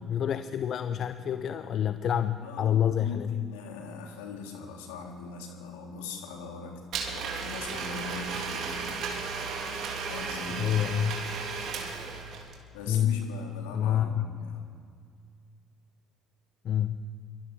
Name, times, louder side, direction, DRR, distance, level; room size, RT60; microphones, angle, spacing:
voice 1, 0.0-3.4 10.6-11.2 12.9-13.2 13.7-14.3 16.6-17.0, left 10 dB, 50° left, 11 dB, 0.9 m, -27 dB
voice 2, 2.4-9.0 10.0-11.0 12.7-14.7, left 4 dB, 70° left, 2 dB, 3.6 m, -41 dB
Domestic sounds home sounds, 6.9-12.6, right 5 dB, 55° right, 3.8 m, -35 dB
27.0 x 24.0 x 6.4 m, 2.2 s
figure-of-eight pair, 55°, 0 cm